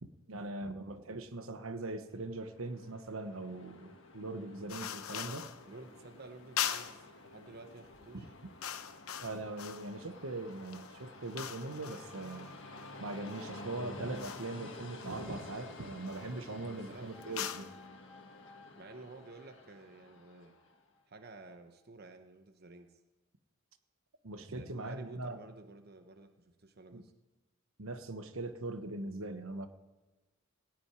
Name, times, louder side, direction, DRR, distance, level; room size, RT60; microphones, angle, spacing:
voice 1, 0.0-5.5 9.2-12.5 13.0-17.7 24.2-25.4 26.9-27.0 27.8-29.7, right 2 dB, 75° right, 9 dB, 1.1 m, -41 dB
Train, 2.2-20.8, left 2 dB, 60° left, 1.6 m, -51 dB
sound 1, 4.7-5.7 6.6-7.1 7.8-8.0 8.3-10.0 10.5-13.5 14.1-14.6 15.0-15.6 16.0-16.3 17.2-17.8, left 9 dB, 85° left, 0.8 m, -41 dB
voice 2, 5.7-8.3 16.6-17.5 18.8-20.5 21.1-22.9 24.4-27.1, right 2 dB, 50° right, 6 dB, 1.0 m, -52 dB
sound 2, 11.8-21.5 21.8-21.9, left 3 dB, ahead, 1.3 m, -60 dB
18.0 x 6.3 x 9.7 m, 1.2 s
head